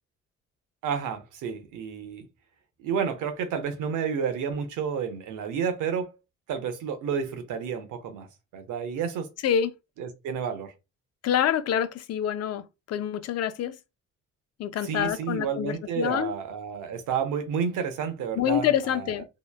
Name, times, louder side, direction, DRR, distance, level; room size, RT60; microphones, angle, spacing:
voice 1, 0.8-2.3 2.8-6.1 6.5-8.3 8.5-9.3 10.0-10.7 14.8-19.1, right 7 dB, 85° right, 0.7 m, -30 dB
voice 2, 11.2-13.7 14.6-16.3 18.4-19.3, left 10 dB, 55° left, 0.4 m, -26 dB
2.9 x 2.1 x 2.2 m
cardioid pair, 90°, 30 cm